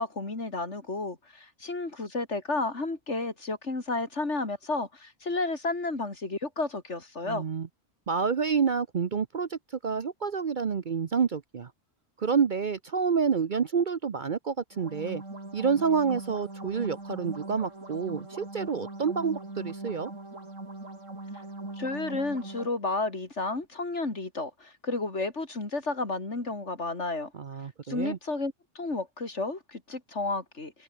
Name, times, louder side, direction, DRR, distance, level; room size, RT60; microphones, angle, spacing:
voice 1, 0.0-7.4 21.8-27.3 27.9-30.7, left 3 dB, 65° left, 3.8 m, -32 dB
voice 2, 7.2-7.7 8.1-11.7 12.2-15.2 15.5-20.1 27.3-28.2, right 6 dB, 45° right, 0.8 m, -28 dB
sound 1, 14.7-22.7, right 2 dB, 85° right, 5.8 m, -41 dB
omnidirectional pair, 1.3 m